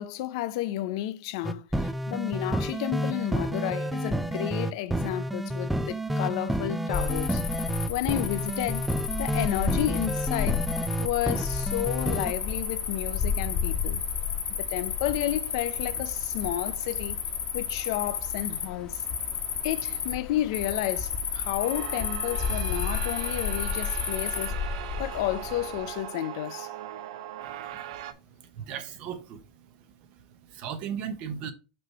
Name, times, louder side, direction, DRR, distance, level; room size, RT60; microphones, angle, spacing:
voice 1, 0.0-7.5 7.9-8.9 9.2-10.6 11.0-14.0 14.6-17.2 17.5-19.0 19.6-26.7, left 14 dB, 65° left, 0.5 m, -32 dB
sound 1, 1.4-12.3, right 1 dB, ahead, 0.3 m, -30 dB
Cricket, 6.9-25.8, left 6 dB, 25° left, 1.0 m, -31 dB
sound 2, 21.6-28.1, right 12 dB, 90° right, 0.7 m, -39 dB
voice 2, 27.7-29.7 30.5-31.5, right 8 dB, 40° right, 1.0 m, -37 dB
6.0 x 3.2 x 5.6 m
supercardioid pair, 165°, 3 cm